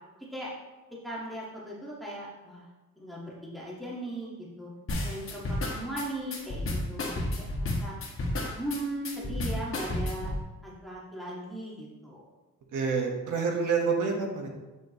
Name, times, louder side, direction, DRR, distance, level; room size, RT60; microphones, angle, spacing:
voice 1, 1.0-2.6 3.0-4.3 4.6-4.7 5.0-8.2 8.6-10.3 10.6-12.2, right 1 dB, ahead, -6 dB, 1.7 m, -38 dB
sound 1, 4.9-10.4, left 1 dB, 45° left, 1.6 m, -31 dB
voice 2, 12.7-14.5, right 5 dB, 85° right, 1 dB, 1.4 m, -28 dB
8.9 x 6.2 x 3.1 m, 1.2 s
cardioid pair, 110°, 30 cm